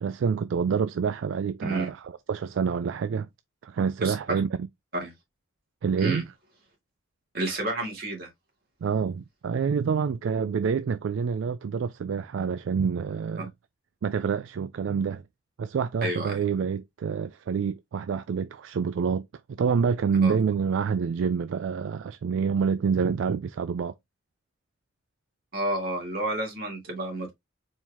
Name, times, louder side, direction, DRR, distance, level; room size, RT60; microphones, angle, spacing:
voice 1, 0.0-3.3 3.6-4.5 5.8-6.2 8.8-13.5 14.0-15.2 15.6-19.2 19.6-23.9, right 6 dB, 70° right, 0.3 m, -27 dB
voice 2, 7.3-8.3 16.0-16.4 20.2-20.4 25.5-27.3, right 2 dB, 50° right, 2.2 m, -30 dB
4.5 x 2.9 x 3.4 m
head